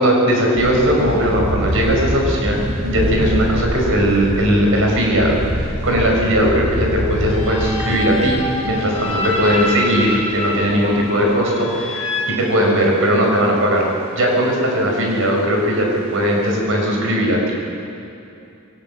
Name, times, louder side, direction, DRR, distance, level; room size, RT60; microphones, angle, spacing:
voice 1, 0.0-13.8 14.1-17.5, equal, 65° right, 0 dB, 5.3 m, -18 dB
sound 1, 0.5-12.0 12.4-12.5 13.0-13.8 14.1-14.3 14.6-15.9 16.2-16.5, equal, 85° right, 8.0 m, -26 dB
sound 2, 7.2-13.3, left 1 dB, 25° left, 6.0 m, -26 dB
22.0 x 19.0 x 8.3 m, 2.7 s
head